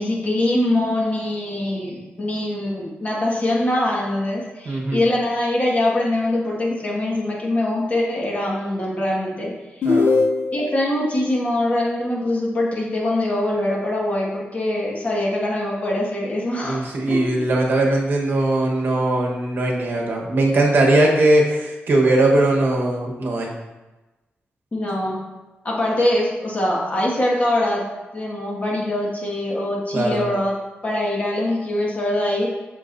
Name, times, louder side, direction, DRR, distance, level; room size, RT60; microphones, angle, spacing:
voice 1, 0.0-10.0 10.5-17.5 24.7-25.2 25.6-27.8 28.1-30.5 30.8-32.5, left 1 dB, 35° left, -3 dB, 1.7 m, -23 dB
voice 2, 4.7-5.0 9.8-10.1 16.6-23.5 29.9-30.2, right 2 dB, 55° right, -1 dB, 1.2 m, -19 dB
sound 1, 9.8-10.9, left 3 dB, 65° left, 0.5 m, -19 dB
8.4 x 6.4 x 2.6 m, 1.1 s
wide cardioid pair, 135°, 4 cm